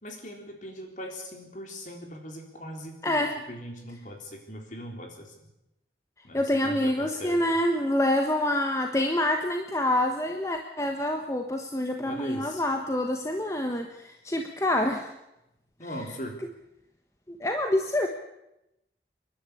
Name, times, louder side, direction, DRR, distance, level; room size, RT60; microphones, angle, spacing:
voice 1, 0.0-5.3 6.2-7.4 12.0-12.6 15.8-16.4, equal, 45° left, 3 dB, 3.9 m, -40 dB
voice 2, 3.0-3.4 6.3-15.1 15.8-16.1 17.3-18.1, left 1 dB, 15° left, 4 dB, 1.3 m, -27 dB
28.5 x 11.5 x 8.5 m, 0.89 s
head